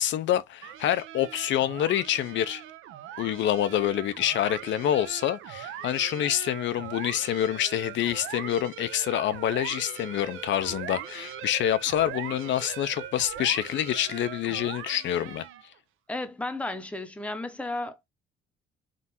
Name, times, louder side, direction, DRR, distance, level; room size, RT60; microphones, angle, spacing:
voice 1, 0.0-2.6 3.2-15.5, left 11 dB, 70° left, 0.4 m, -27 dB
sound 1, 0.6-15.8, right 10 dB, 80° right, 0.6 m, -41 dB
voice 2, 16.1-18.1, left 2 dB, 5° left, 0.7 m, -33 dB
3.7 x 2.4 x 4.1 m
cardioid pair, 105°, 20 cm